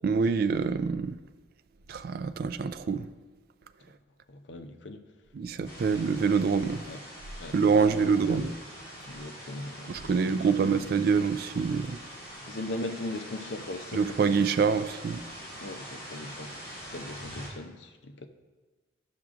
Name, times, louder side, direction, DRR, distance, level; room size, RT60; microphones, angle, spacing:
voice 1, 0.0-1.2 1.9-3.1 5.3-6.8 7.5-8.5 9.9-12.0 13.9-15.2, right 5 dB, 55° right, 12 dB, 0.3 m, -26 dB
voice 2, 4.3-5.0 6.9-7.0 7.4-8.5 9.1-10.7 12.5-14.3 15.6-18.3, left 2 dB, 70° left, 7 dB, 0.6 m, -39 dB
sound 1, 5.6-17.5, equal, 15° left, 2.6 m, -44 dB
12.0 x 5.9 x 2.5 m, 1.3 s
head